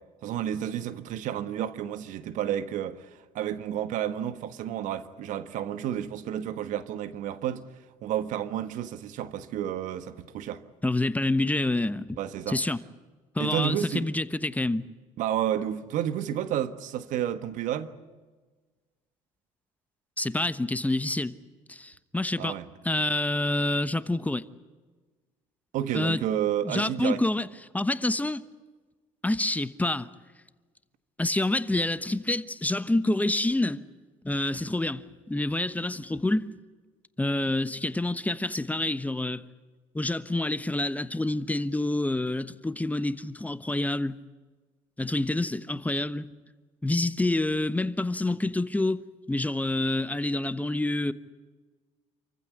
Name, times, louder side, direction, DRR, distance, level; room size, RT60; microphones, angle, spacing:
voice 1, 0.2-3.1 3.3-7.6 8.0-10.6 12.2-12.6 13.4-14.1 15.2-17.9 22.4-22.7 25.7-27.2, right 10 dB, 65° right, 1.5 m, -31 dB
voice 2, 10.8-12.2 12.5-12.8 13.3-14.9 20.2-21.4 21.7-22.5 22.8-24.4 25.9-26.2 26.6-27.5 27.7-28.4 29.2-30.1 31.2-33.8 34.2-36.5 37.2-39.4 39.9-44.2 45.0-46.3 46.8-49.0 49.3-51.1, left 2 dB, 10° left, 1.1 m, -27 dB
27.5 x 15.0 x 9.7 m
hypercardioid pair, 70°, 14 cm